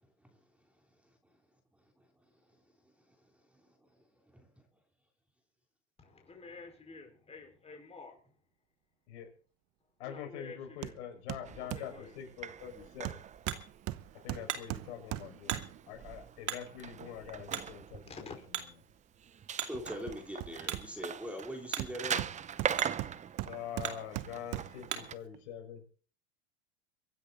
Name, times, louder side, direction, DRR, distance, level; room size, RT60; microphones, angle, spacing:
voice 1, 6.0-8.4 10.0-10.9 11.6-12.2 12.7-13.2 14.1-14.3 18.1-18.3, left 4 dB, 15° left, 4.9 m, -50 dB
voice 2, 10.0-13.2 14.2-18.4 23.5-25.8, left 9 dB, 65° left, 5.7 m, -44 dB
Hammer, 10.8-11.0 11.3-12.0 13.1-16.0 19.7-21.2 21.8-24.9 25.3-25.4, right 17 dB, 45° right, 1.0 m, -40 dB
sound 1, 11.4-25.2, right 8 dB, 20° right, 0.8 m, -42 dB
Hammer 2, 12.6-25.3, right 9 dB, 90° right, 2.6 m, -44 dB
voice 3, 19.7-22.3, equal, 5° right, 3.2 m, -41 dB
24.5 x 10.0 x 4.1 m
hypercardioid pair, 110°, 35 cm